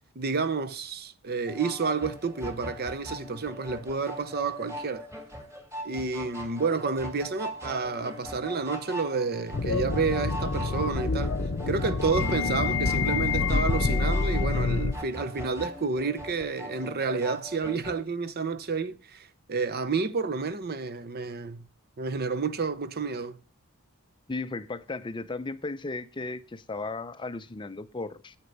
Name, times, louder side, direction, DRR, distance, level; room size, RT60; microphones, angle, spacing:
voice 1, 0.2-5.0 5.8-11.4 11.7-21.7 22.0-23.4, right 4 dB, 45° right, 0.7 m, -30 dB
sound 1, 1.5-18.0, equal, 15° right, 2.1 m, -41 dB
sound 2, 9.5-14.9, left 4 dB, 55° left, 0.7 m, -27 dB
voice 2, 24.3-28.4, left 3 dB, 20° left, 0.5 m, -35 dB
9.9 x 8.1 x 5.2 m
head